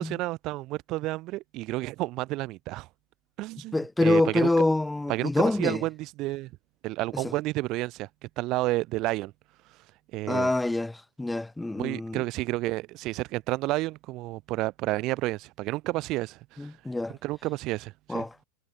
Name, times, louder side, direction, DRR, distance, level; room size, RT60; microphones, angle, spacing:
voice 1, 0.0-2.9 3.4-4.5 5.1-6.5 6.8-9.3 10.1-10.5 11.8-16.7 17.1-18.2, right 19 dB, 45° right, 1.4 m, -31 dB
voice 2, 3.7-5.8 7.1-7.3 10.3-12.2 16.6-17.1 18.1-18.3, left 2 dB, 5° left, 1.8 m, -26 dB
hypercardioid pair, 95°, 0 cm